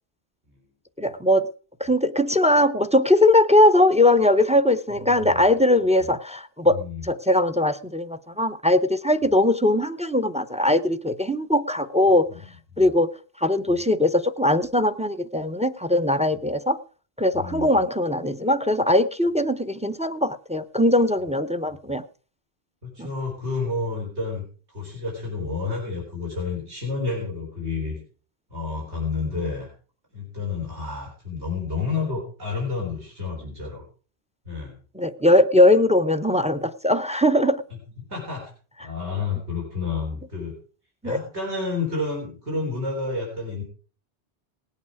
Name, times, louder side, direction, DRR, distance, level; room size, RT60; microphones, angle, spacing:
voice 1, 1.0-1.5 1.8-12.2 12.8-13.1 13.4-16.8 17.2-22.0 23.0-23.1 35.0-37.6 41.0-41.2, left 1 dB, 10° right, 11 dB, 0.4 m, -20 dB
voice 2, 4.9-5.4 6.6-7.0 12.3-12.5 13.7-13.8 17.3-17.8 22.8-28.0 28.5-29.7 30.1-33.8 34.5-34.8 37.7-38.5 38.8-40.5 41.0-43.6, left 4 dB, 85° right, -2 dB, 4.1 m, -30 dB
18.5 x 8.5 x 4.8 m, 0.41 s
omnidirectional pair, 1.1 m